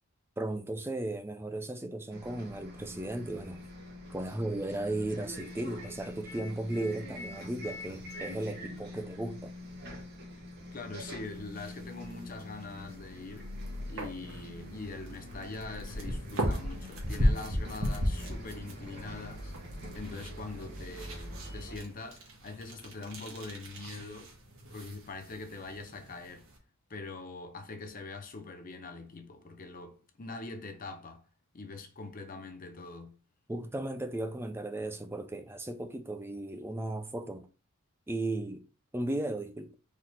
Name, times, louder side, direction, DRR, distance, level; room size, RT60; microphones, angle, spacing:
voice 1, 0.4-3.6 4.1-9.5 33.5-37.5 38.1-38.6 38.9-39.7, right 1 dB, 10° right, 0.4 m, -35 dB
Bus, 2.1-21.8, left 1 dB, 50° right, 1.5 m, -44 dB
voice 2, 10.7-13.5 13.9-19.5 19.9-24.3 24.7-26.5 26.9-31.2 31.5-33.2, left 3 dB, 40° left, 0.7 m, -43 dB
sound 1, 11.2-26.6, equal, 65° right, 1.4 m, -37 dB
4.2 x 3.2 x 4.0 m
head